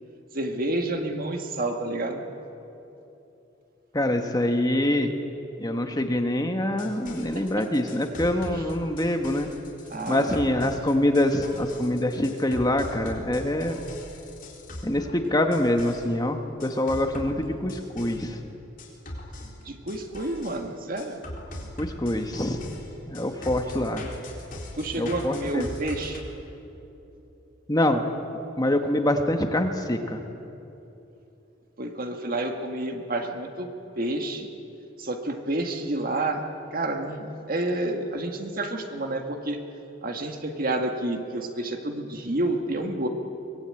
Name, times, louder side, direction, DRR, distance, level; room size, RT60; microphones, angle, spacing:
voice 1, 0.3-2.2 7.4-7.6 9.9-10.6 19.7-21.2 24.8-26.2 31.8-33.7 34.0-34.5 35.0-36.4 36.7-39.6 40.0-43.1, right 2 dB, 45° right, 4 dB, 1.9 m, -29 dB
voice 2, 3.9-5.1 5.6-9.5 10.1-13.8 14.8-18.4 21.8-22.6 23.1-24.1 24.9-25.7 27.7-28.0 28.6-30.2, left 1 dB, 20° left, 5 dB, 1.3 m, -25 dB
sound 1, 6.7-16.1 16.6-18.3 18.8-20.6 21.0-26.2, left 1 dB, 45° left, 3.9 m, -40 dB
23.5 x 19.5 x 9.0 m, 2.9 s
head